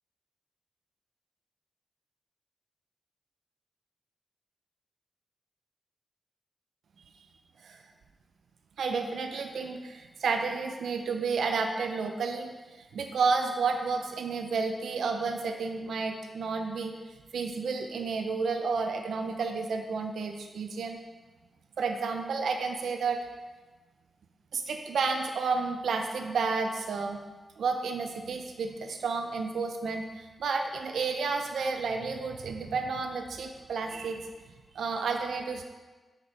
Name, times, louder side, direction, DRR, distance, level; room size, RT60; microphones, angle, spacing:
voice 1, 8.8-16.9 17.3-21.0 21.8-23.2 24.5-27.2 27.6-34.3 34.7-35.6, right 4 dB, 90° right, 4 dB, 0.5 m, -31 dB
6.5 x 5.2 x 4.6 m, 1.3 s
cardioid pair, 80°, 0 cm